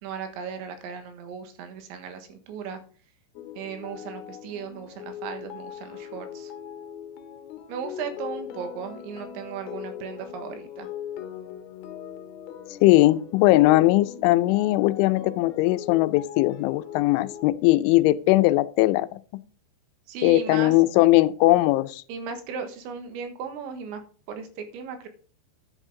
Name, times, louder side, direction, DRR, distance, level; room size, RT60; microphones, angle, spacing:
voice 1, 0.0-2.8 3.6-6.5 7.7-10.9 20.1-20.7 22.1-24.0 24.3-25.1, right 6 dB, 85° right, 3.7 m, -36 dB
sound 1, 3.4-17.5, left 9 dB, 70° left, 2.7 m, -40 dB
voice 2, 12.8-19.1 20.2-22.0, left 18 dB, 90° left, 3.0 m, -19 dB
10.5 x 9.1 x 3.7 m
omnidirectional pair, 5.3 m